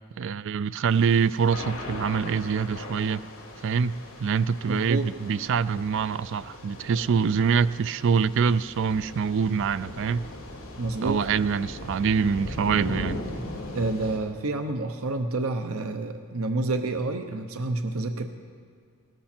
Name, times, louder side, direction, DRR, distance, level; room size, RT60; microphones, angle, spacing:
voice 1, 0.2-3.2 3.6-10.3 11.0-13.2, right 6 dB, 60° right, 16 dB, 0.3 m, -25 dB
Thunder / Rain, 0.9-14.2, left 1 dB, 70° left, 3.2 m, -39 dB
voice 2, 4.7-5.1 10.8-11.2 13.7-18.3, right 2 dB, 80° right, 7 dB, 0.8 m, -28 dB
18.0 x 13.0 x 4.4 m, 2.1 s
head